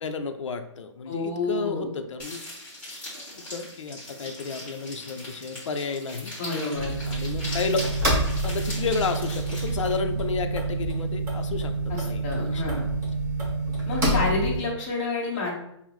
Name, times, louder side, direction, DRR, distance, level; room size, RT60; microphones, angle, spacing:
voice 1, 0.0-2.4 3.4-6.3 7.1-7.8 8.4-11.7 12.0-12.8, left 5 dB, 75° left, 7 dB, 0.5 m, -31 dB
voice 2, 1.1-1.9 6.4-7.0 11.9-12.9 13.9-15.5, left 3 dB, 25° left, -3 dB, 1.0 m, -29 dB
sound 1, 2.2-10.0, left 1 dB, 10° left, 1.3 m, -40 dB
sound 2, 6.8-14.6, right 2 dB, 15° right, 0.9 m, -27 dB
5.4 x 2.0 x 3.0 m, 0.77 s
hypercardioid pair, 160°, 16 cm